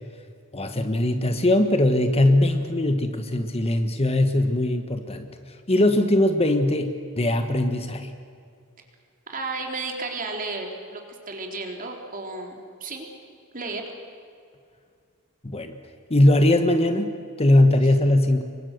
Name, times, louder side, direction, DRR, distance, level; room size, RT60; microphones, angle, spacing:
voice 1, 0.5-8.1 15.4-15.8 16.1-18.4, left 1 dB, 30° left, 7 dB, 1.4 m, -21 dB
voice 2, 9.3-13.1 13.5-13.8, right 3 dB, 40° right, 2 dB, 3.6 m, -33 dB
28.0 x 23.5 x 6.7 m, 2.3 s
head